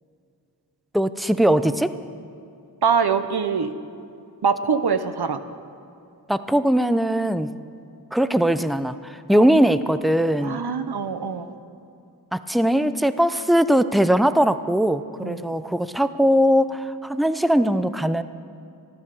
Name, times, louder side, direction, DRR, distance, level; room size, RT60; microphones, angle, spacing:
voice 1, 0.9-1.9 6.3-7.5 8.1-10.6 12.3-18.2, equal, ahead, 12 dB, 0.6 m, -20 dB
voice 2, 2.8-3.7 4.4-5.4 9.3-9.5 10.4-11.6 15.2-15.6, right 6 dB, 85° right, 10 dB, 0.8 m, -24 dB
14.5 x 12.5 x 6.8 m, 2.6 s
wide cardioid pair, 50°, 38 cm